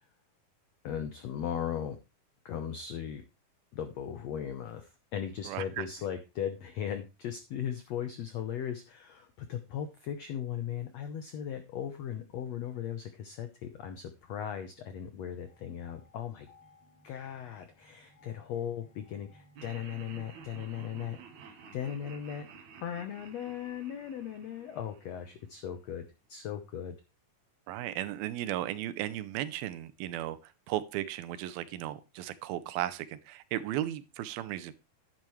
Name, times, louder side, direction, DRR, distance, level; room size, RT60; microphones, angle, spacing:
voice 1, 0.8-2.0 2.4-3.2 3.7-16.5 17.0-27.0, left 9 dB, 85° left, 8 dB, 1.5 m, -38 dB
voice 2, 5.4-5.9 27.7-34.7, right 13 dB, 80° right, 14 dB, 2.5 m, -35 dB
sound 1, 15.5-20.9, left 2 dB, 60° left, 4.2 m, -62 dB
Laughter, 19.6-25.7, right 6 dB, 60° right, 2.2 m, -52 dB
10.5 x 10.5 x 3.2 m, 0.28 s
omnidirectional pair, 4.3 m